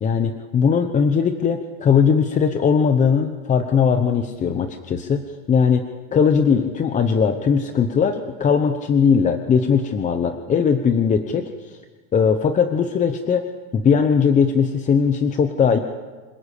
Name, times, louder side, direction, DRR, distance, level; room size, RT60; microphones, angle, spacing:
voice 1, 0.0-5.8 6.1-11.8 12.1-13.5 13.7-15.8, left 6 dB, 20° left, 8 dB, 0.9 m, -19 dB
27.0 x 19.0 x 8.5 m, 1.4 s
cardioid pair, 170°, 39 cm